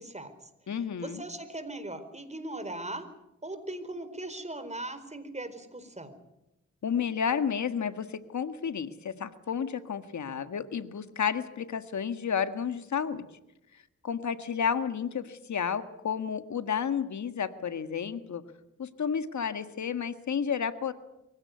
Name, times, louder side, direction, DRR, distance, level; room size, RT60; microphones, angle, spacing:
voice 1, 0.0-0.5 1.0-3.0 3.4-6.2, right 1 dB, 25° right, 10 dB, 4.5 m, -39 dB
voice 2, 0.7-1.2 6.8-13.3 14.0-18.4 18.8-20.9, left 7 dB, 70° left, 11 dB, 1.7 m, -31 dB
23.5 x 16.5 x 9.6 m, 0.91 s
cardioid pair, 45°, 30 cm